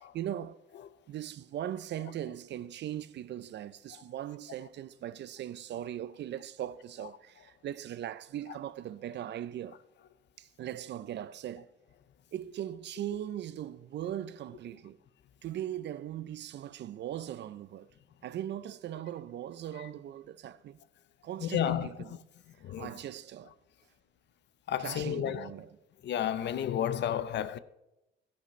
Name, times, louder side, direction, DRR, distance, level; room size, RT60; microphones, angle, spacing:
voice 1, 0.1-0.6 1.1-9.8 10.4-11.7 12.3-15.0 15.4-17.9 18.2-20.8 21.2-22.2 22.8-23.5 24.8-25.7, right 11 dB, 60° right, 0.5 m, -39 dB
voice 2, 21.4-21.9 22.6-22.9 24.7-25.5 26.0-27.6, left 10 dB, 60° left, 0.6 m, -31 dB
13.5 x 10.0 x 3.1 m
cardioid pair, 90°, 20 cm